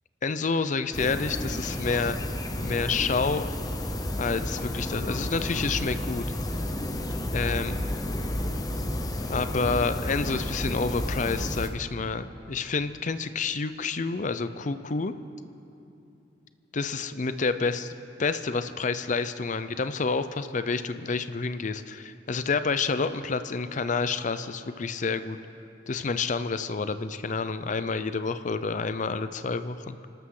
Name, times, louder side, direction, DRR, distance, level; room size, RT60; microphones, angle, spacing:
voice 1, 0.2-2.2 2.6-3.5 4.2-6.3 7.3-7.7 9.3-15.1 16.7-17.9 18.2-25.4 25.9-30.0, left 4 dB, 45° left, 11 dB, 0.6 m, -29 dB
sound 1, 0.9-11.7, left 1 dB, 20° left, 0.9 m, -31 dB
28.5 x 12.5 x 3.8 m, 2.7 s
head